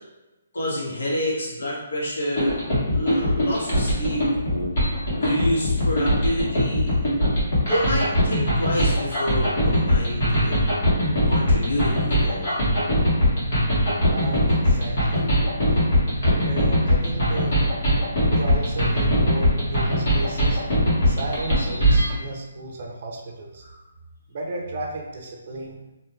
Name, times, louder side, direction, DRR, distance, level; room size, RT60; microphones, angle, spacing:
voice 1, 0.5-2.6 2.9-4.3 5.2-7.0 7.7-10.5 11.3-12.6 15.2-16.1 20.9-21.2, left 1 dB, 85° left, -5 dB, 1.2 m, -28 dB
sound 1, 2.4-22.1, equal, 55° left, 1.3 m, -21 dB
voice 2, 14.1-15.3 16.2-17.6 18.2-20.6 21.1-23.6 24.3-25.8, right 2 dB, 45° right, 0 dB, 0.6 m, -33 dB
3.4 x 2.6 x 2.3 m, 1.0 s
hypercardioid pair, 165°, 0 cm